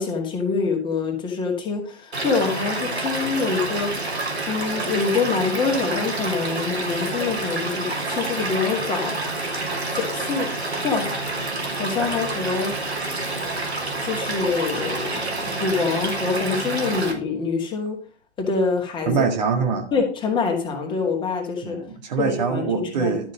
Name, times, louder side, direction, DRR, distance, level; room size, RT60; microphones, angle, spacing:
voice 1, 0.0-4.1 4.5-9.3 9.9-10.5 10.8-11.3 11.7-13.0 14.0-18.0 18.4-19.2 19.9-21.8 22.2-23.1, left 4 dB, 15° left, 2.2 m, -25 dB
Stream / Liquid, 2.1-17.1, right 2 dB, 75° right, 3.5 m, -28 dB
voice 2, 19.1-19.9 21.6-23.3, right 5 dB, 40° right, 1.9 m, -24 dB
12.5 x 6.3 x 5.3 m
figure-of-eight pair, 120°, 33 cm